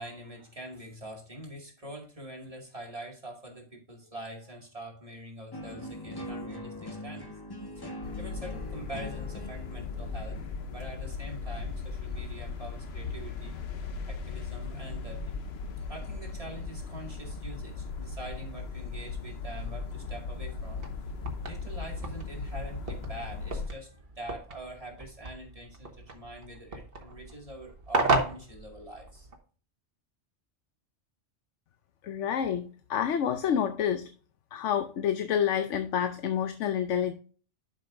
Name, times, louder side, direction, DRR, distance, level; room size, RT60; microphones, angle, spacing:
voice 1, 0.0-7.3 8.2-10.4 10.7-13.6 14.1-15.4 15.9-20.8 21.5-29.3, right 1 dB, 30° right, -1 dB, 2.3 m, -44 dB
sound 1, 5.5-11.5, left 1 dB, 20° left, 1.2 m, -42 dB
sound 2, 8.0-23.7, left 4 dB, 65° left, 1.1 m, -38 dB
sound 3, 20.7-29.4, right 3 dB, 55° right, 1.6 m, -35 dB
voice 2, 32.0-34.1 34.5-37.1, left 8 dB, 85° left, 9 dB, 1.0 m, -28 dB
11.0 x 5.8 x 2.6 m, 0.38 s
omnidirectional pair, 1.2 m